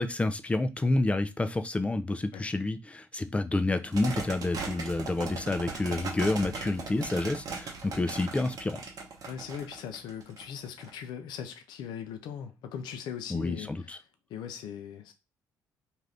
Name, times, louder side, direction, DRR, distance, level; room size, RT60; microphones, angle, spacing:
voice 1, 0.0-8.8 13.3-14.0, left 2 dB, 15° left, 0.4 m, -29 dB
sound 1, 3.9-10.9, right 4 dB, 55° right, 0.9 m, -38 dB
voice 2, 9.3-13.7 14.3-15.1, left 8 dB, 80° left, 0.5 m, -39 dB
2.6 x 2.4 x 3.3 m
supercardioid pair, 75°, 7 cm